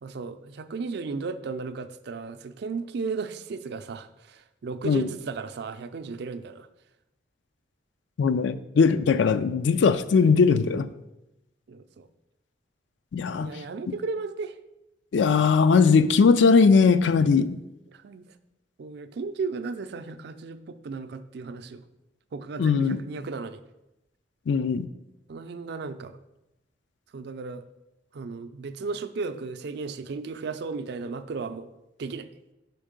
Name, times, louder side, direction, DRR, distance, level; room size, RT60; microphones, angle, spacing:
voice 1, 0.0-6.7 11.7-12.1 13.3-14.6 17.9-18.2 18.8-21.8 22.3-23.6 25.3-26.2 27.1-27.7 28.1-31.7 32.0-32.3, right 4 dB, 60° right, 11 dB, 0.4 m, -35 dB
voice 2, 8.2-10.9 13.1-13.5 15.1-17.6 22.6-23.0 24.5-24.9, left 5 dB, 70° left, 12 dB, 0.4 m, -20 dB
5.3 x 4.5 x 5.1 m, 0.92 s
head